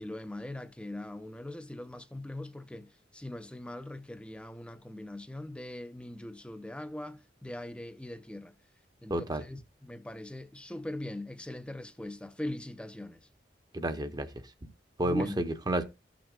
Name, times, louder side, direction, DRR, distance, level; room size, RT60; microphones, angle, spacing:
voice 1, 0.0-8.6 9.0-13.3 15.0-15.4, left 1 dB, 5° left, 0.5 m, -41 dB
voice 2, 9.1-9.4 13.7-14.3 15.0-15.8, right 1 dB, 25° right, 0.8 m, -30 dB
15.0 x 6.0 x 2.3 m
head